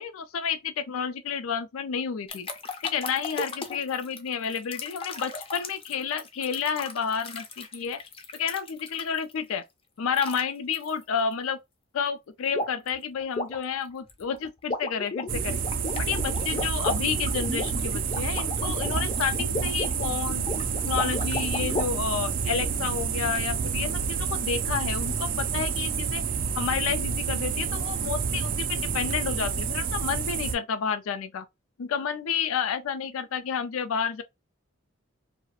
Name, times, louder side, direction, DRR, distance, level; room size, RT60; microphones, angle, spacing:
voice 1, 0.0-2.5 2.8-8.0 8.3-9.6 10.0-11.6 11.9-15.6 16.0-20.5 20.9-26.2 26.5-31.4 31.8-34.2, left 7 dB, 90° left, 0.4 m, -30 dB
sound 1, 2.3-9.3 10.1-10.4 10.7-10.9 12.5-12.9 13.2-21.8, left 2 dB, 25° left, 0.4 m, -35 dB
sound 2, 15.3-30.6, right 6 dB, 40° right, 0.3 m, -29 dB
2.3 x 2.1 x 2.7 m
head